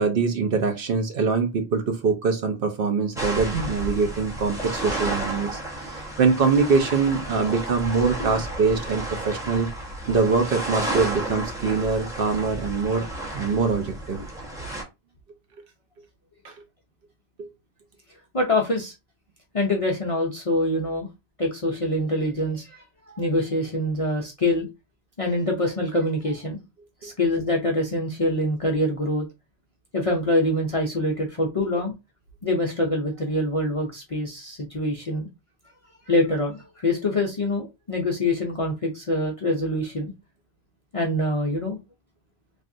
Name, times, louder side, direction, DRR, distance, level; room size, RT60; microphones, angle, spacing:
voice 1, 0.0-9.7 10.1-13.1 13.3-14.2 16.4-16.5 17.4-17.5 27.0-27.1, right 4 dB, 60° right, 0.7 m, -23 dB
sound 1, 3.2-14.8, right 1 dB, 5° right, 0.8 m, -32 dB
voice 2, 18.3-18.9 19.5-21.1 21.4-24.7 25.2-26.6 27.0-29.3 29.9-31.9 32.4-35.3 35.9-40.1 40.9-41.8, left 1 dB, 45° left, 0.4 m, -25 dB
3.4 x 2.4 x 2.6 m
omnidirectional pair, 1.2 m